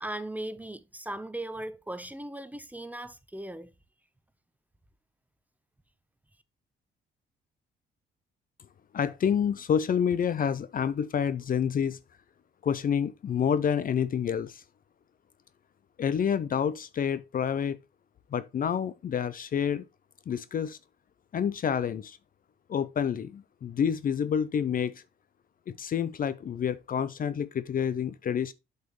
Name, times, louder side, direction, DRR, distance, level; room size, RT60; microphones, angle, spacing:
voice 1, 0.0-3.7, right 1 dB, 10° right, 0.7 m, -38 dB
voice 2, 8.9-12.0 12.6-14.6 16.0-17.8 18.3-19.8 20.3-20.8 21.3-22.2 22.7-25.0 25.7-28.5, left 8 dB, 45° left, 0.5 m, -28 dB
7.7 x 5.5 x 3.1 m
cardioid pair, 90°, 20 cm